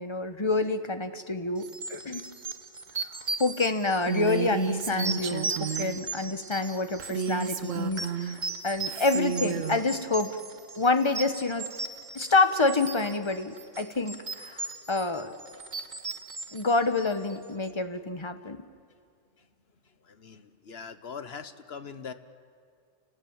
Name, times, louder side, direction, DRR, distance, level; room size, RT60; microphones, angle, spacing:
voice 1, 0.0-2.2 3.4-10.3 10.7-11.7 12.1-15.3 16.5-18.6, left 3 dB, 25° left, 9 dB, 1.2 m, -27 dB
sound 1, 1.6-17.4, right 3 dB, 35° right, 1.4 m, -38 dB
Female speech woman speaking, 4.1-6.0 7.0-8.4 8.9-9.8, right 7 dB, 80° right, 1.4 m, -32 dB
voice 2, 20.1-22.1, left 6 dB, 55° left, 11 dB, 1.3 m, -41 dB
29.5 x 19.0 x 8.8 m, 2.2 s
omnidirectional pair, 1.3 m